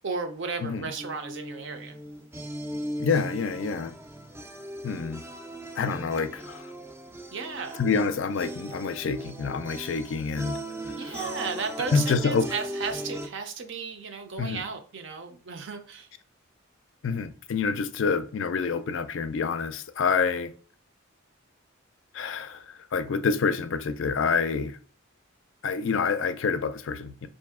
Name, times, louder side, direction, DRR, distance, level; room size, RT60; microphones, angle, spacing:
voice 1, 0.0-2.0 7.3-7.8 11.0-16.1, right 5 dB, 60° right, 0.6 m, -34 dB
voice 2, 0.6-0.9 3.0-3.9 4.8-5.2 5.8-6.7 7.8-10.6 11.0-11.3 11.9-12.5 14.4-14.6 17.0-20.5 22.1-24.8 25.6-27.3, left 5 dB, 65° left, 0.4 m, -27 dB
sound 1, 1.0-13.3, right 1 dB, 10° right, 0.3 m, -38 dB
4.7 x 2.6 x 3.6 m
head